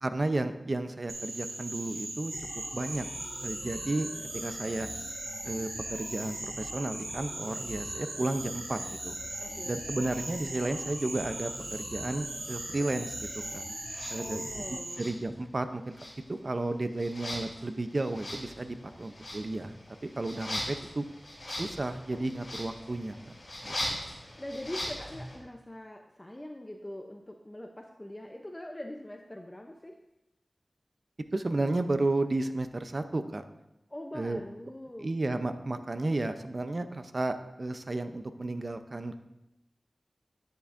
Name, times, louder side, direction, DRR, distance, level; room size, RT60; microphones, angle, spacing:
voice 1, 0.0-2.3 2.7-3.1 3.4-4.9 5.4-9.1 9.6-13.6 14.1-14.4 14.7-16.0 16.3-19.7 20.0-21.1 21.5-23.3 23.6-24.0 31.3-33.4 34.1-34.4 35.0-39.2, right 2 dB, 45° right, 9 dB, 0.6 m, -33 dB
Frog, 1.1-14.9, right 2 dB, 85° right, 1.4 m, -39 dB
sound 1, 2.3-14.8, left 3 dB, 75° left, 0.5 m, -46 dB
voice 2, 9.4-9.8 14.1-15.1 24.4-30.0 33.9-35.1, left 1 dB, 20° left, 3 dB, 0.6 m, -43 dB
sound 2, 13.9-14.1 14.9-15.6 15.9-25.4, left 1 dB, 50° left, 3.6 m, -40 dB
10.5 x 9.6 x 2.6 m, 0.92 s
wide cardioid pair, 75°, 0 cm